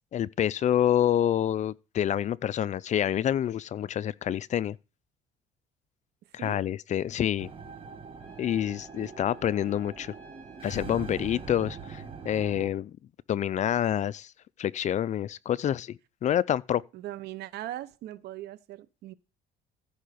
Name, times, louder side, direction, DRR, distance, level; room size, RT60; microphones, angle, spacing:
voice 1, 0.1-4.8 6.3-7.5 8.4-10.1 10.6-12.9 13.3-14.3 14.6-16.8, left 10 dB, 45° left, 0.4 m, -27 dB
sound 1, 7.4-12.7, right 5 dB, 30° right, 1.6 m, -43 dB
Trumpet, 8.2-12.5, right 1 dB, 10° left, 5.5 m, -59 dB
voice 2, 16.9-19.1, right 14 dB, 75° right, 0.9 m, -40 dB
14.5 x 5.4 x 5.0 m
cardioid pair, 110°, 17 cm